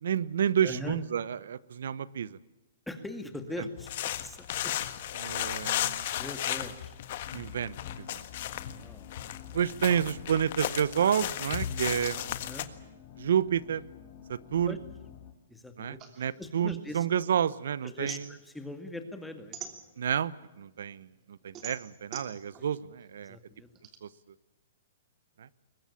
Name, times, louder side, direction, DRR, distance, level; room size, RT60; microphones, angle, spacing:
voice 1, 0.0-2.4 5.2-6.0 7.3-8.2 9.5-12.4 13.2-13.8 14.3-14.8 15.8-18.2 20.0-23.4 24.0-24.1 25.4-25.5, right 8 dB, 70° right, 19 dB, 1.0 m, -30 dB
voice 2, 0.6-1.0 2.9-4.7 6.2-7.0 8.5-9.1 12.4-12.7 14.7-14.8 15.5-16.0 16.4-17.1 17.8-19.8 22.6-22.7 23.2-23.7, left 1 dB, 5° left, 7 dB, 2.1 m, -41 dB
sound 1, 3.8-12.6, left 12 dB, 50° left, 1.6 m, -35 dB
sound 2, 7.2-15.3, left 9 dB, 30° left, 3.0 m, -50 dB
sound 3, 16.0-17.5 17.8-20.3 20.8-24.0, right 8 dB, 25° right, 3.0 m, -45 dB
22.5 x 20.0 x 8.6 m, 1.0 s
hypercardioid pair, 150°, 0 cm